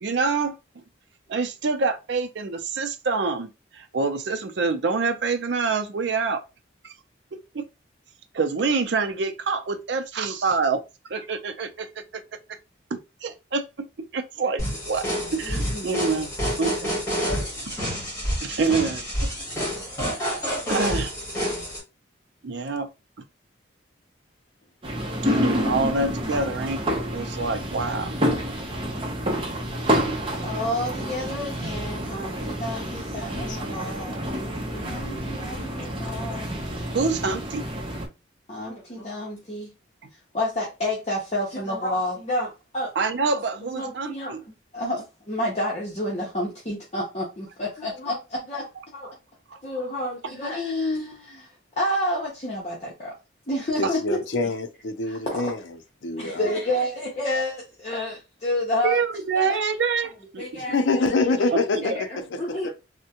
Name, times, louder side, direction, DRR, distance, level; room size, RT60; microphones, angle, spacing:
voice 1, 0.0-0.6 1.3-6.4 7.5-7.6 8.3-10.8 11.1-11.9 12.1-12.2 12.9-13.9 14.1-15.0 15.3-16.3 16.6-16.9 18.4-19.3 20.7-21.1 22.4-22.9 25.2-26.8 27.1-28.1 36.9-37.6 43.0-44.4 49.1-49.2 49.5-49.6 53.8-53.9 58.8-60.4 61.5-61.6, right 4 dB, 65° right, 0.5 m, -26 dB
sound 1, 14.6-21.8, equal, 15° left, 1.5 m, -28 dB
voice 2, 15.4-15.9 30.4-36.5 38.5-39.7 40.3-42.9 43.6-44.3 44.7-49.1 49.6-51.5 51.8-53.1 53.5-54.2 55.1-55.5 56.2-59.0 59.3-59.6 60.4-61.1 61.8-62.7, left 1 dB, 35° left, 0.7 m, -30 dB
sound 2, 24.8-38.1, equal, 30° right, 0.7 m, -28 dB
voice 3, 53.8-55.6 56.0-56.5 60.6-62.6, left 3 dB, 75° left, 0.5 m, -26 dB
3.4 x 2.1 x 2.8 m
head